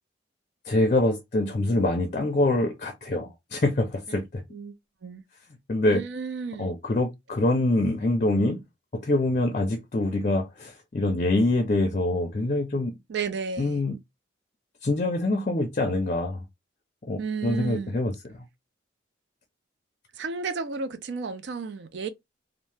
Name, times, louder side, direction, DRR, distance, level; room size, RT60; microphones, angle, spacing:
voice 1, 0.6-4.4 5.7-6.0 6.6-8.6 9.0-12.9 13.6-13.9 14.8-16.4 17.1-18.1, left 2 dB, 40° left, 0.4 m, -25 dB
voice 2, 5.9-6.7 13.1-13.8 17.2-18.0 20.1-22.1, right 5 dB, 65° right, 0.4 m, -33 dB
2.7 x 2.0 x 3.2 m
head